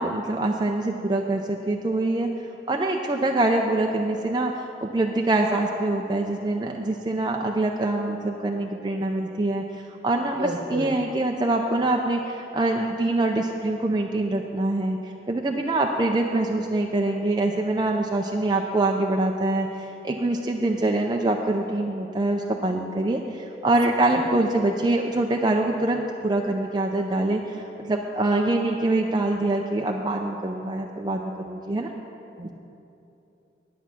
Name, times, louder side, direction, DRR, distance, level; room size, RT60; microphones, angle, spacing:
voice 1, 0.0-2.3 2.7-15.0 15.3-31.9 32.4-32.5, right 2 dB, 25° right, 1 dB, 0.4 m, -24 dB
voice 2, 10.4-10.9 32.4-32.5, right 1 dB, 60° right, 4 dB, 1.0 m, -31 dB
10.5 x 9.3 x 5.9 m, 2.8 s
head